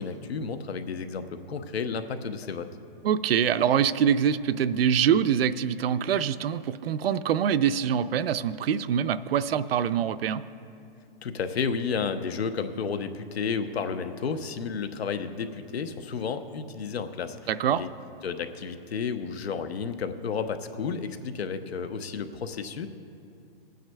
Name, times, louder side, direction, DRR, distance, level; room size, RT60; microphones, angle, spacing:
voice 1, 0.0-2.7 11.2-17.4 17.8-17.9 18.2-22.9, left 5 dB, 90° left, 10 dB, 0.8 m, -32 dB
voice 2, 3.0-10.4 17.5-17.8, right 8 dB, 70° right, 13 dB, 0.5 m, -24 dB
26.0 x 9.2 x 2.3 m, 2.6 s
hypercardioid pair, 170°, 30 cm